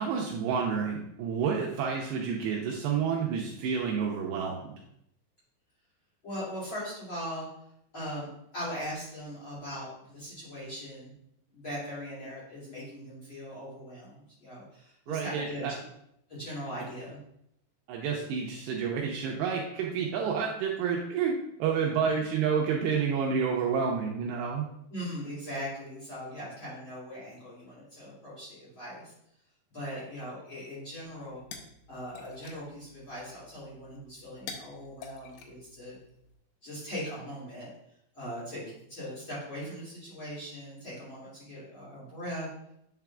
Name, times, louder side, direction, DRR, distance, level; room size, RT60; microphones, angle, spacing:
voice 1, 0.0-4.7 15.1-15.7 17.9-21.3 21.6-24.6, right 6 dB, 85° right, -1 dB, 2.5 m, -29 dB
voice 2, 6.2-7.5 7.9-11.1 11.5-15.8 16.3-17.2 22.0-22.2 24.9-29.1 29.7-31.4 31.9-36.0 36.6-37.7 38.1-42.5, equal, 35° left, -9 dB, 2.2 m, -40 dB
sound 1, 31.0-36.3, left 5 dB, 90° left, 2.3 m, -49 dB
8.4 x 5.9 x 2.3 m, 0.77 s
omnidirectional pair, 5.4 m